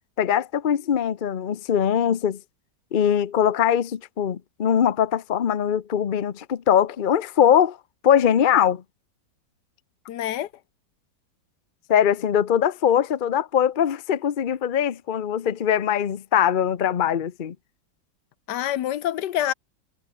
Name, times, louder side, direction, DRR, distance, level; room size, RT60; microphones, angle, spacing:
voice 1, 0.2-2.4 2.9-7.8 8.0-8.8 11.9-17.5, left 9 dB, 50° left, 0.6 m, -21 dB
voice 2, 10.1-10.5 18.5-19.5, left 12 dB, 70° left, 1.3 m, -26 dB
omnidirectional pair, 2.0 m